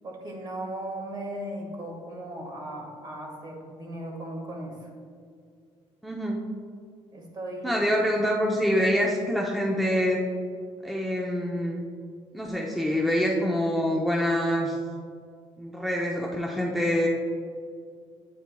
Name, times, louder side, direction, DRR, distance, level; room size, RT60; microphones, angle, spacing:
voice 1, 0.0-4.9 7.1-8.0, right 1 dB, 40° right, 1 dB, 1.6 m, -37 dB
voice 2, 6.0-6.4 7.6-10.2 10.8-11.8 12.3-14.8 15.6-17.1, equal, ahead, -1 dB, 0.6 m, -25 dB
8.9 x 8.7 x 2.2 m, 2.3 s
cardioid pair, 115°, 11 cm